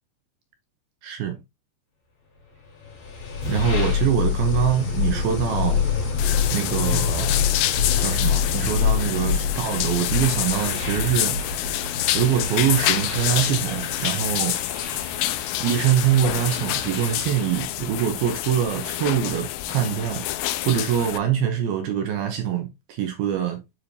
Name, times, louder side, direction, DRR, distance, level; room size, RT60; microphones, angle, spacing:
voice 1, 1.0-1.4 3.5-5.8 6.5-7.3 8.0-11.7 12.1-14.6 15.6-23.6, right 9 dB, 75° right, 2.4 m, -24 dB
sound 1, 2.8-17.4, left 6 dB, 65° left, 4.8 m, -26 dB
sound 2, 6.2-21.2, left 14 dB, 85° left, 2.4 m, -27 dB
9.9 x 4.9 x 2.7 m
omnidirectional pair, 5.1 m